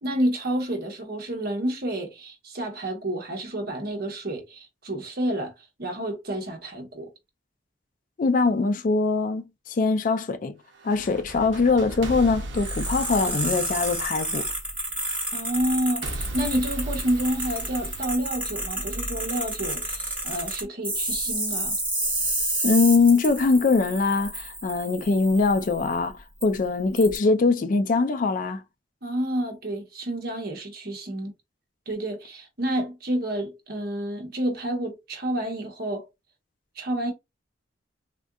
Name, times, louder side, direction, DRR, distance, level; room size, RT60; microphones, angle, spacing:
voice 1, 0.0-5.5 5.8-7.1 15.3-21.8 29.0-31.3 31.9-36.1 36.8-37.1, right 1 dB, 55° right, 1.0 m, -29 dB
voice 2, 8.2-10.5 10.8-14.5 22.6-28.6, left 4 dB, 45° left, 0.4 m, -22 dB
sound 1, 10.7-14.9 16.0-18.9, right 1 dB, 75° right, 0.7 m, -36 dB
sound 2, 12.5-25.9 26.4-26.5 27.0-27.2, right 1 dB, 10° right, 1.5 m, -30 dB
3.6 x 2.6 x 2.3 m
head